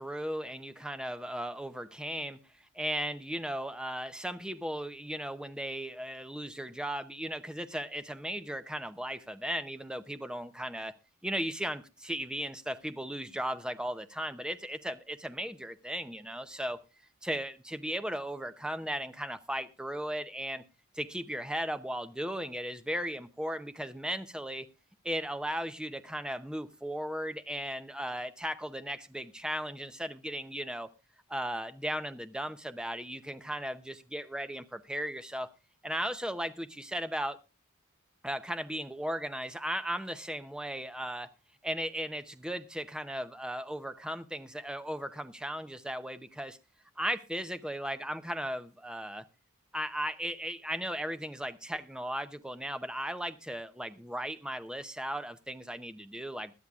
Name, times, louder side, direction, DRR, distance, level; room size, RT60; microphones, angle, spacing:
voice 1, 0.0-2.4 2.7-11.0 11.2-16.8 17.2-20.6 21.0-24.7 25.0-30.9 31.3-35.5 35.8-37.4 38.2-41.3 41.6-46.6 47.0-49.2 49.7-56.5, equal, 5° right, 0.6 m, -36 dB
21.5 x 12.5 x 2.4 m
head